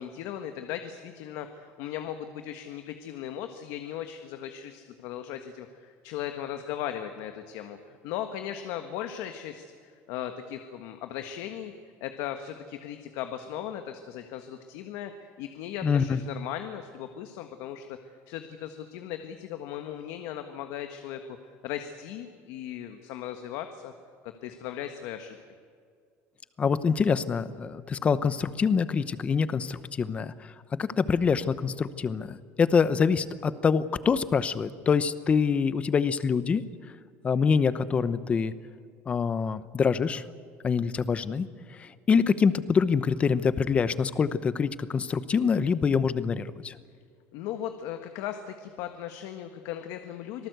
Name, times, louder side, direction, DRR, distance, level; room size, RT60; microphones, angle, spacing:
voice 1, 0.0-9.7 10.1-11.7 12.0-18.0 18.3-21.2 21.6-23.9 24.2-25.4 47.3-50.5, left 10 dB, 75° left, 7 dB, 1.5 m, -37 dB
voice 2, 15.8-16.2 26.6-30.3 30.8-36.6 37.2-38.5 39.1-40.2 40.6-41.5 41.8-46.7, left 6 dB, 20° left, 15 dB, 0.8 m, -25 dB
26.0 x 18.5 x 8.1 m, 2.1 s
cardioid pair, 165°, 6 cm